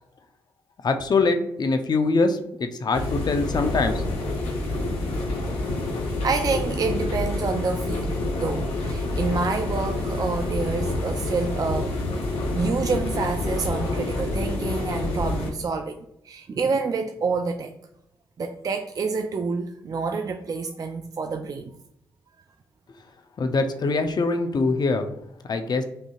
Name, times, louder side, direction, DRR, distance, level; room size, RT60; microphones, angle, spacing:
voice 1, 0.8-4.0 23.4-25.1 25.5-25.8, left 3 dB, 45° left, 7 dB, 0.6 m, -23 dB
sound 1, 2.9-15.5, left 2 dB, 85° left, 0.8 m, -27 dB
voice 2, 6.2-12.0 12.5-16.0 16.2-17.7 18.4-21.7, right 4 dB, 40° right, 6 dB, 0.4 m, -28 dB
5.4 x 2.8 x 2.3 m, 0.79 s
hypercardioid pair, 45°, 9 cm